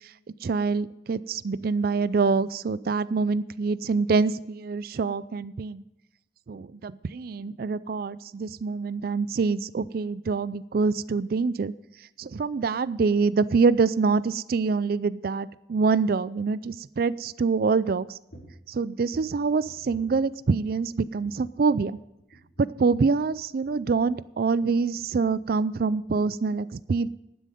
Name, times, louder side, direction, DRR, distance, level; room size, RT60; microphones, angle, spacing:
voice 1, 0.4-5.8 6.5-11.7 12.2-18.2 18.7-21.9 22.6-27.1, right 4 dB, 55° right, 18 dB, 0.4 m, -25 dB
sound 1, 18.3-18.7 19.1-20.7 21.0-21.5 21.8-22.0 22.3-24.7 25.0-25.5 25.8-26.0 26.3-26.4, right 1 dB, 65° left, 5.5 m, -51 dB
12.0 x 10.0 x 5.2 m, 0.88 s
head